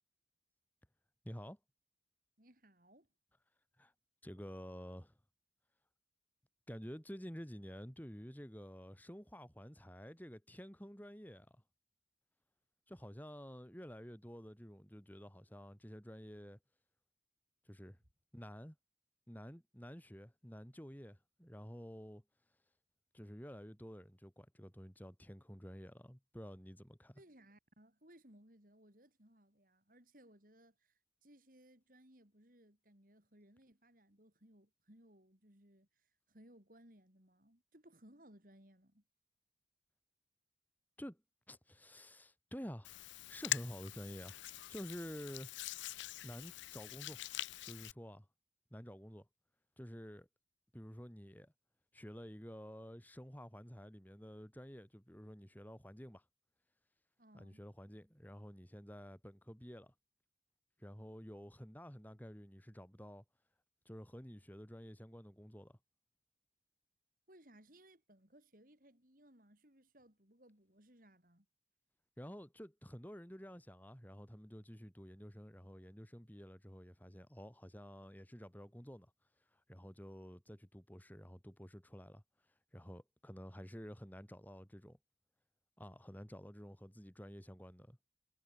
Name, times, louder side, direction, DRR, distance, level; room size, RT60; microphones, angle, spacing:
voice 1, 1.2-1.6 3.8-3.9 4.2-5.2 6.7-11.6 12.9-16.6 17.7-18.0 18.3-18.8 19.3-22.2 23.1-27.2 41.0-41.2 41.5-43.0 43.3-44.4 44.7-45.5 46.2-47.2 47.6-48.3 48.7-49.3 49.8-50.3 50.7-51.5 51.9-56.2 57.3-59.9 60.8-63.2 63.9-65.8 72.2-79.1 79.5-82.2 82.7-85.0 85.8-88.0, equal, 10° left, 3.6 m, -50 dB
voice 2, 2.4-3.1 27.1-39.0 57.2-57.6 67.3-71.5, right 1 dB, 50° right, 5.4 m, -64 dB
Hands, 42.8-47.9, left 14 dB, 90° left, 0.5 m, -44 dB
head